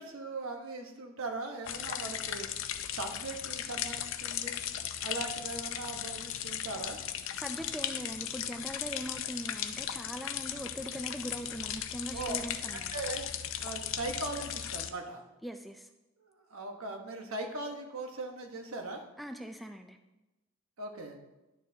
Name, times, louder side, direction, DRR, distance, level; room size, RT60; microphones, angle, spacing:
voice 1, 0.0-2.5 2.9-4.6 5.0-7.0 12.1-12.4 12.7-13.2 13.6-15.2 16.2-19.0 20.8-21.2, right 2 dB, 90° right, 3 dB, 1.1 m, -39 dB
sound 1, 1.7-14.9, left 10 dB, 65° left, 0.5 m, -37 dB
voice 2, 7.4-12.9 15.4-15.9 19.2-20.0, equal, ahead, 6 dB, 0.3 m, -41 dB
11.0 x 6.6 x 2.7 m, 1.0 s
head